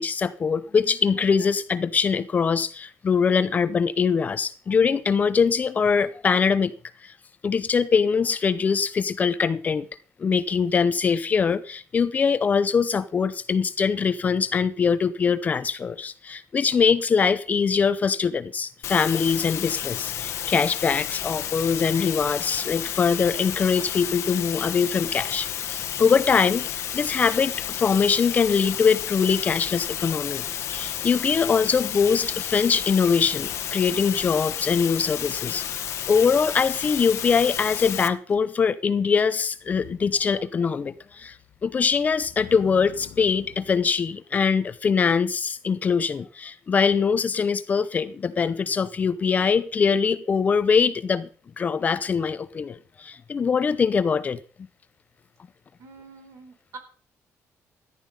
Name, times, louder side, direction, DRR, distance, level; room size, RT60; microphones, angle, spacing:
voice 1, 0.0-6.7 7.0-7.1 7.4-9.9 10.2-30.4 30.7-41.4 41.6-51.3 51.6-54.4, left 6 dB, 30° left, 0.6 m, -23 dB
sound 1, 18.8-38.1, left 10 dB, 55° left, 1.1 m, -31 dB
Motor vehicle (road), 38.3-38.4 39.6-43.9, left 9 dB, 80° left, 1.8 m, -48 dB
voice 2, 55.8-56.8, right 4 dB, 60° right, 4.0 m, -45 dB
14.0 x 11.0 x 5.3 m
cardioid pair, 170°, 6 cm